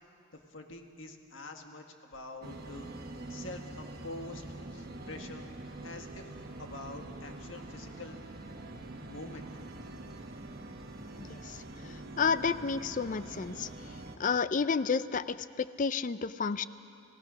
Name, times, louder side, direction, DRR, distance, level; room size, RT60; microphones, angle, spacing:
voice 1, 0.3-2.9 3.3-4.4 4.7-5.5 5.8-6.3 6.6-8.2 9.1-9.5, left 2 dB, 65° left, 4 dB, 1.7 m, -45 dB
sound 1, 2.4-14.2, right 2 dB, 45° right, 1.4 m, -45 dB
voice 2, 12.2-13.7 14.2-16.6, left 5 dB, 35° left, 15 dB, 0.4 m, -30 dB
29.5 x 16.0 x 6.3 m, 2.7 s
head